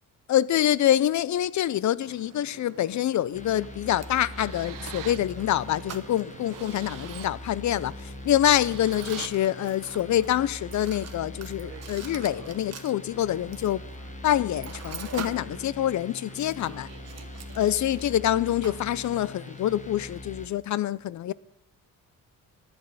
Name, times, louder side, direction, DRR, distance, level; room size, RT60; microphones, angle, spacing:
voice 1, 0.3-7.9 8.3-13.8 14.2-16.9 17.5-21.3, left 12 dB, 60° left, 0.5 m, -26 dB
Mechanisms, 2.0-20.2, right 7 dB, 50° right, 1.2 m, -46 dB
sound 1, 3.3-20.5, left 2 dB, 20° left, 1.1 m, -42 dB
sound 2, 3.6-3.7 4.2-5.3 5.8-5.9 6.3-7.3 8.2-9.3, right 10 dB, 70° right, 0.9 m, -43 dB
11.0 x 7.7 x 8.2 m
cardioid pair, 100°, 33 cm